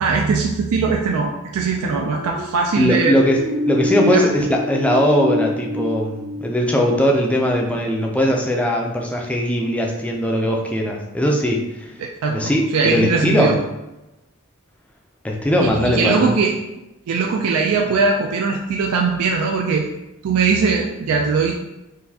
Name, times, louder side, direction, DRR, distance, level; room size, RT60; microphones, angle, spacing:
voice 1, 0.0-3.2 4.1-4.2 12.0-13.6 15.6-16.5 17.1-19.9 20.2-21.6, right 4 dB, 75° right, 1 dB, 0.3 m, -20 dB
sound 1, 1.7-7.4, left 1 dB, 45° right, 1.0 m, -27 dB
voice 2, 2.8-11.9 12.3-13.5 15.2-16.3, equal, 5° left, 0 dB, 0.4 m, -19 dB
3.9 x 2.5 x 2.7 m, 0.98 s
head